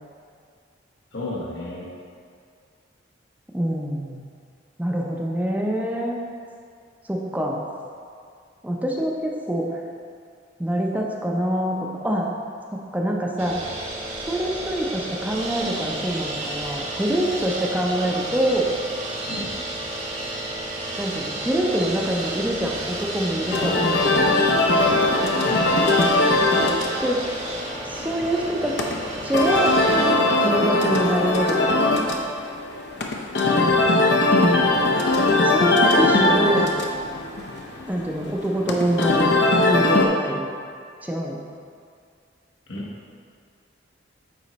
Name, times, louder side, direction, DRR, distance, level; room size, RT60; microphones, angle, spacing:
voice 1, 1.1-1.9 19.3-19.5 25.5-25.6 33.4-33.8 42.7-42.8, left 2 dB, 85° left, -5 dB, 1.4 m, -32 dB
voice 2, 3.5-4.2 4.8-6.2 7.1-7.6 8.6-9.8 10.6-12.3 12.9-13.6 14.3-18.7 21.0-24.4 27.0-27.2 27.8-28.8 29.2-29.8 30.4-32.1 35.4-36.7 37.9-39.3 39.6-40.5 41.0-41.4, right 1 dB, 10° right, -1 dB, 0.5 m, -25 dB
sound 1, 13.4-30.1, right 1 dB, 35° right, 1.0 m, -32 dB
sound 2, 23.4-40.1, left 2 dB, 60° left, 0.6 m, -20 dB
9.2 x 3.1 x 4.0 m, 2.2 s
head